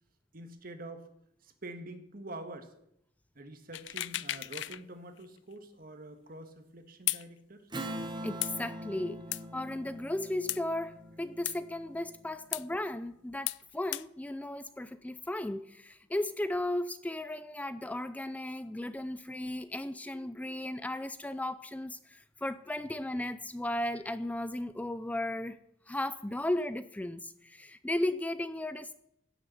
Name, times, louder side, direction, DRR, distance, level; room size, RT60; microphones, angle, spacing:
voice 1, 0.3-1.1 1.4-2.7 3.3-7.7, right 1 dB, 55° right, 7 dB, 1.7 m, -46 dB
sound 1, 3.7-4.8 5.2-5.3 7.1-7.2 8.4-8.5 9.3-9.4 10.5-10.6 11.5-11.6 12.5-12.6 13.5-13.6 13.9-14.0, left 16 dB, 80° left, 0.4 m, -34 dB
Strum, 7.7-12.6, right 1 dB, 25° right, 1.4 m, -43 dB
voice 2, 8.2-9.2 9.5-25.6 25.9-28.9, left 1 dB, 10° left, 13 dB, 0.4 m, -35 dB
16.0 x 7.0 x 6.9 m, 0.76 s
head